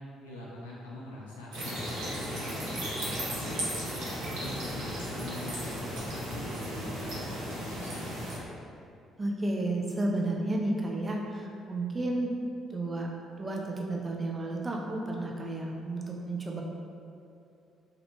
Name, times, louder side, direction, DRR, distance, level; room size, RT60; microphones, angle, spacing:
voice 1, 0.2-3.6 4.1-8.2, left 1 dB, 90° left, -6 dB, 0.4 m, -43 dB
sound 1, 1.5-8.4, equal, 75° right, 0.6 m, -35 dB
voice 2, 9.2-12.3 12.7-13.1 13.4-16.6, right 2 dB, 30° right, -1 dB, 0.4 m, -32 dB
2.6 x 2.1 x 2.7 m, 2.5 s
hypercardioid pair, 50°, 0 cm